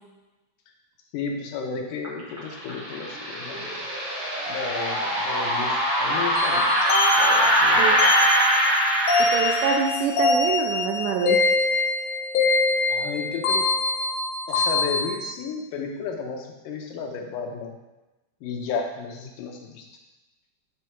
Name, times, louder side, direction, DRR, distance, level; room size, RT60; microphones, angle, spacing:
voice 1, 1.1-3.9 4.5-6.9 7.2-8.1 12.9-13.7 14.5-17.8 18.4-19.9, left 5 dB, 90° left, 2 dB, 2.5 m, -33 dB
sound 1, 2.0-9.8, equal, 40° right, 2.3 m, -22 dB
sound 2, 6.4-15.1, left 2 dB, 65° left, 1.8 m, -24 dB
voice 2, 9.2-11.4, right 6 dB, 80° right, 2 dB, 2.1 m, -26 dB
9.6 x 3.6 x 4.5 m, 1.1 s
omnidirectional pair, 3.8 m